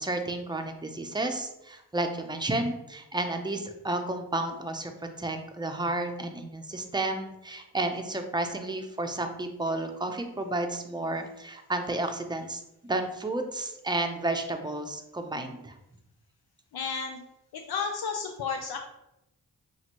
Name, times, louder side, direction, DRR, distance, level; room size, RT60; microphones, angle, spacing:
voice 1, 0.0-4.9 5.2-15.7, right 2 dB, 10° right, 5 dB, 0.6 m, -32 dB
voice 2, 16.7-17.2 17.5-18.8, left 5 dB, 70° left, 3 dB, 0.5 m, -32 dB
5.8 x 2.5 x 2.9 m, 0.87 s
cardioid pair, 50°, 39 cm